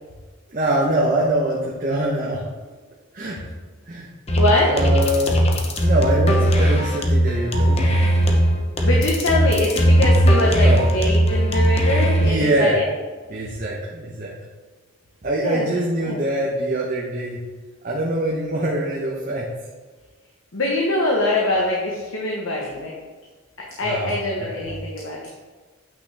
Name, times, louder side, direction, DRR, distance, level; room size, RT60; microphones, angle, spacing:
voice 1, 0.5-2.5 3.1-3.5 3.9-4.1 4.7-5.4 5.8-8.0 10.6-10.8 12.2-12.8 13.3-14.3 15.2-17.4 17.8-19.5 23.8-24.2 24.4-24.8, right 1 dB, 40° right, -4 dB, 1.0 m, -23 dB
voice 2, 4.3-4.7 8.8-12.9 15.4-15.6 16.0-16.2 20.5-23.0 23.6-25.3, left 2 dB, 70° left, -2 dB, 1.1 m, -23 dB
sound 1, 4.3-12.3, equal, 30° left, 0.8 m, -18 dB
8.8 x 6.0 x 3.4 m, 1.3 s
head